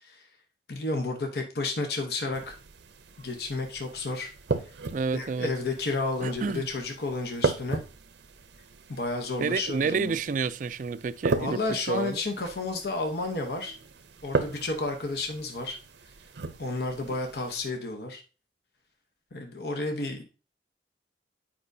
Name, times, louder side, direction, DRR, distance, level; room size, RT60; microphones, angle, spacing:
voice 1, 0.7-2.6 3.2-4.3 5.1-7.8 8.9-10.2 11.4-13.8 14.2-15.8 16.6-18.2 19.3-20.2, left 2 dB, 60° left, 0.9 m, -31 dB
sound 1, 2.3-17.7, right 3 dB, 80° right, 0.6 m, -36 dB
voice 2, 4.9-5.5 6.2-6.7 9.4-12.2, right 5 dB, 45° right, 0.3 m, -29 dB
8.6 x 5.1 x 2.7 m
head